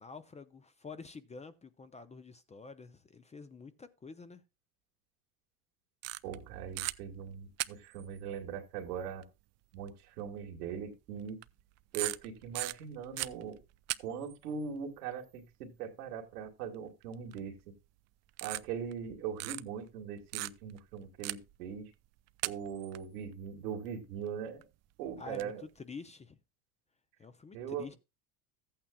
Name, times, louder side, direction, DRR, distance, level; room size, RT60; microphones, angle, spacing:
voice 1, 0.0-4.4 25.2-26.4 27.2-28.0, left 4 dB, 15° left, 0.5 m, -48 dB
sound 1, 6.0-6.5 6.8-7.0 7.6-8.1 9.2-9.3 9.9-10.0 11.3-11.6 11.9-14.0 14.2-14.4 17.3-17.6 18.4-19.1 19.4-19.6 20.3-20.8 21.2-21.6 22.3-23.0 24.6-24.7 25.2-25.4, right 17 dB, 40° right, 0.4 m, -37 dB
voice 2, 6.2-9.3 9.7-11.4 11.9-13.6 14.0-17.6 18.4-21.9 22.4-24.7 25.0-25.6 27.5-28.0, right 7 dB, 85° right, 2.1 m, -40 dB
14.0 x 8.7 x 2.3 m
supercardioid pair, 100°, 44 cm